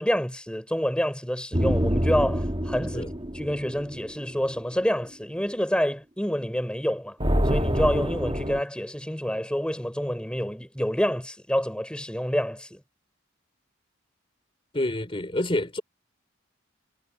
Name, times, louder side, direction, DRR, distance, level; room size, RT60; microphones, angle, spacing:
voice 1, 0.0-7.2 7.4-12.8, equal, 5° left, 4.2 m, -28 dB
sound 1, 1.5-4.2 7.2-8.6, equal, 25° right, 2.4 m, -26 dB
voice 2, 14.7-15.8, left 1 dB, 25° left, 3.2 m, -27 dB
head